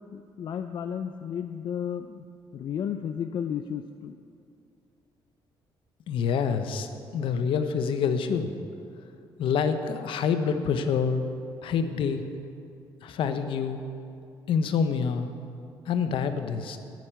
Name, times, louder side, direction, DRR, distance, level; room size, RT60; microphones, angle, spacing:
voice 1, 0.1-2.2 2.5-4.2, left 8 dB, 60° left, 8 dB, 0.5 m, -33 dB
voice 2, 6.1-6.9 7.1-8.5 9.4-11.2 11.6-12.2 13.0-13.8 14.5-15.3 15.9-16.8, left 6 dB, 75° left, 8 dB, 0.9 m, -26 dB
10.0 x 9.4 x 8.3 m, 2.5 s
cardioid pair, 105°, 9 cm